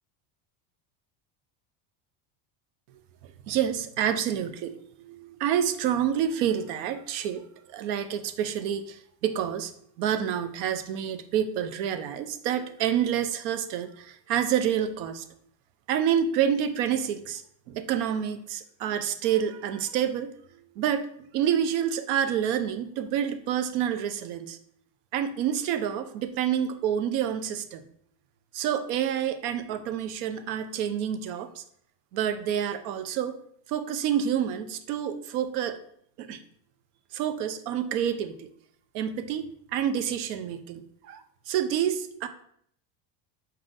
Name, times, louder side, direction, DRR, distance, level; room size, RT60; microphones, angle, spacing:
voice 1, 3.5-4.8 5.1-7.4 7.7-9.0 9.2-9.7 10.0-15.2 15.9-17.4 17.7-20.3 20.8-21.0 21.3-24.6 25.1-27.8 28.5-31.6 32.1-33.4 33.7-35.8 36.2-36.4 37.1-38.5 38.9-39.5 39.7-41.2 41.5-42.3, right 9 dB, 85° right, 11 dB, 0.6 m, -28 dB
4.3 x 3.6 x 2.5 m, 0.66 s
cardioid pair, 140°, 48 cm